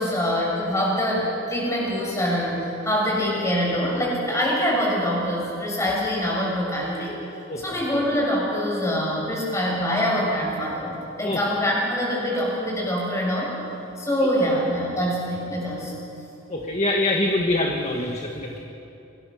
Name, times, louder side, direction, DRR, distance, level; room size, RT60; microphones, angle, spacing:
voice 1, 0.0-7.1 7.6-13.5 14.0-15.9, equal, 15° left, -4 dB, 7.0 m, -24 dB
voice 2, 16.5-18.6, left 2 dB, 35° left, 0 dB, 1.6 m, -24 dB
26.0 x 20.0 x 6.4 m, 2.9 s
head